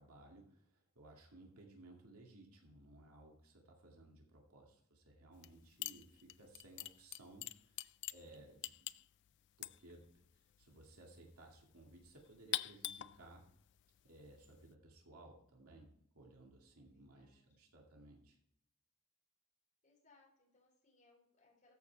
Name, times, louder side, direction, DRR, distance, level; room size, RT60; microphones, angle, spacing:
voice 1, 0.0-8.9 9.6-13.4 14.0-18.4, right 2 dB, 80° right, 0 dB, 2.3 m, -60 dB
voice 2, 1.4-2.0 16.8-17.6 19.8-21.7, left 3 dB, 35° left, -2 dB, 3.9 m, -72 dB
sound 1, 5.3-5.6 5.8-14.7, left 14 dB, 50° left, 0.3 m, -46 dB
14.0 x 5.5 x 4.6 m, 0.71 s
head